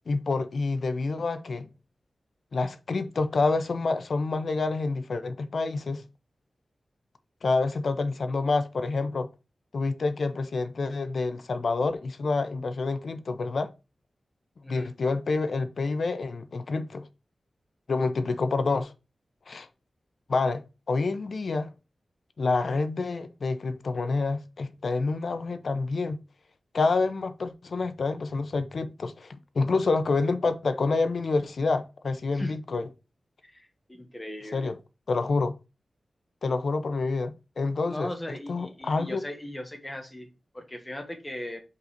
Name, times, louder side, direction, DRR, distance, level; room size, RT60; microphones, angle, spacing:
voice 1, 0.1-1.7 2.5-6.0 7.4-9.3 9.7-13.7 14.7-17.1 17.9-18.9 19.5-19.7 20.3-21.7 22.4-26.2 26.7-32.8 34.5-34.8 35.1-35.5 36.4-39.2, left 3 dB, 65° left, 0.8 m, -28 dB
voice 2, 33.4-34.7 37.8-40.3 40.5-41.6, left 1 dB, 15° left, 1.5 m, -38 dB
5.6 x 4.0 x 5.0 m
wide cardioid pair, 115°, 0 cm